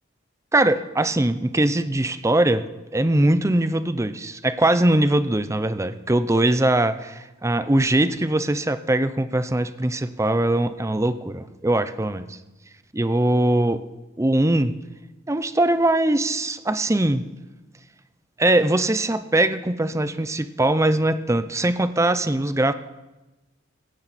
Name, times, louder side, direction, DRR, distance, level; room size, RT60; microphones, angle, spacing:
voice 1, 0.5-2.6 2.9-12.4 12.9-13.8 14.2-14.7 15.3-17.2 18.4-22.7, right 1 dB, 15° right, 12 dB, 0.6 m, -21 dB
16.0 x 15.5 x 4.2 m, 1.1 s
head